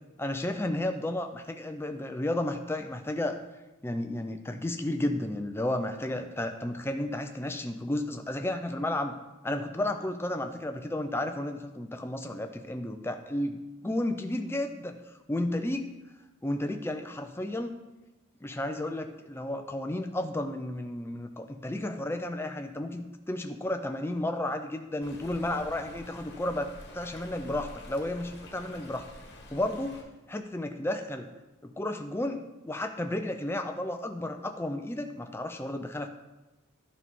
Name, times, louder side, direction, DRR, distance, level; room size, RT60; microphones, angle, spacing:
voice 1, 0.2-3.4 3.8-9.2 9.4-15.0 15.3-15.9 16.4-17.8 18.4-29.1 29.5-31.3 31.6-36.1, left 1 dB, 10° left, 6 dB, 0.4 m, -32 dB
Stream, 25.0-30.0, left 2 dB, 50° left, 1.2 m, -48 dB
11.0 x 5.4 x 3.7 m, 1.1 s
head